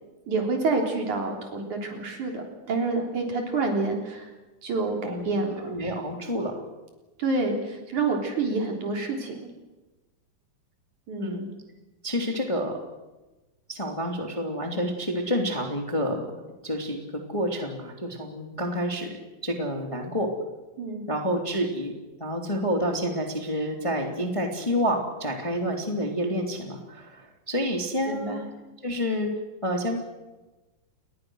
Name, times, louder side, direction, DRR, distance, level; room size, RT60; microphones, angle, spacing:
voice 1, 0.3-4.3 4.6-5.7 7.2-9.5 11.1-11.5 20.8-21.0 28.1-28.4, right 3 dB, 55° right, 2 dB, 4.9 m, -28 dB
voice 2, 5.0-6.6 11.2-11.4 12.0-12.7 13.7-16.3 16.6-17.0 17.3-19.1 19.4-20.3 21.1-21.9 22.2-28.4 28.8-29.3 29.6-30.0, equal, 10° left, 2 dB, 2.4 m, -28 dB
29.5 x 21.5 x 6.4 m, 1.1 s
omnidirectional pair, 4.1 m